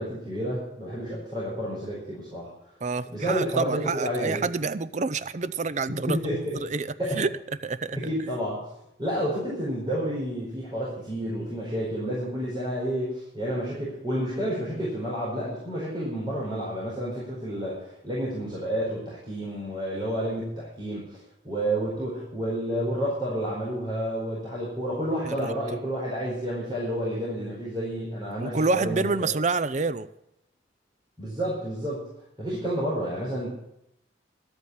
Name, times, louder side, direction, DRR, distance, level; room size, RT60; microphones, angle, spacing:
voice 1, 0.0-2.5 3.1-4.5 6.1-6.6 7.0-7.2 7.9-8.6 9.0-21.2 21.4-29.3 31.2-32.0 32.4-33.5, equal, 20° right, -7 dB, 4.6 m, -30 dB
voice 2, 2.8-7.3 7.6-8.0 25.2-25.6 28.4-30.1, right 3 dB, 40° right, 14 dB, 0.5 m, -28 dB
12.5 x 8.5 x 8.8 m, 0.80 s
head